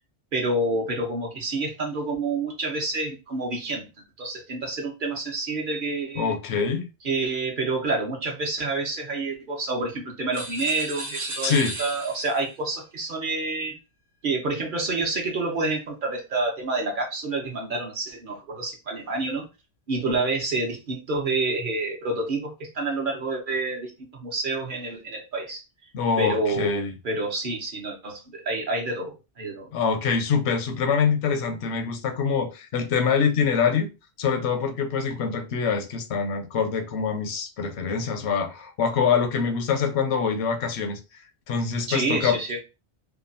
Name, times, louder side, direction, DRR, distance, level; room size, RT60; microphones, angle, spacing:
voice 1, 0.3-3.9 4.2-6.4 7.0-13.8 14.2-19.5 19.9-25.6 26.2-29.7 41.9-42.6, right 3 dB, 55° right, 0.9 m, -28 dB
voice 2, 6.2-6.9 11.4-11.7 25.9-26.9 29.7-33.9 34.2-41.0 41.5-42.6, left 6 dB, 80° left, 0.9 m, -25 dB
sound 1, 10.3-12.5, right 2 dB, 80° right, 1.0 m, -35 dB
2.8 x 2.2 x 2.5 m
omnidirectional pair, 1.1 m